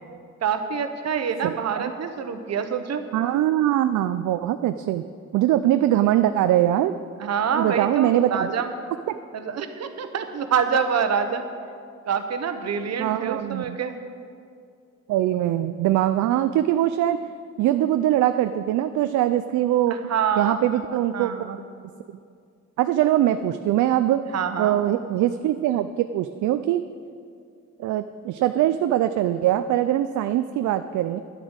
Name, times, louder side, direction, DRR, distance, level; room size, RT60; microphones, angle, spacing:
voice 1, 0.4-3.0 7.2-8.7 9.3-11.4 12.1-14.0 20.1-20.6 21.1-21.6 24.3-24.8, right 7 dB, 60° right, 8 dB, 1.1 m, -26 dB
voice 2, 3.1-5.0 5.3-6.9 7.6-8.5 9.1-9.2 13.0-13.8 15.1-17.2 17.6-20.0 20.4-21.5 22.8-24.2 24.6-26.8 27.8-31.2, right 12 dB, 75° right, 10 dB, 0.5 m, -22 dB
10.5 x 8.8 x 6.4 m, 2.3 s
cardioid pair, 90°, 30 cm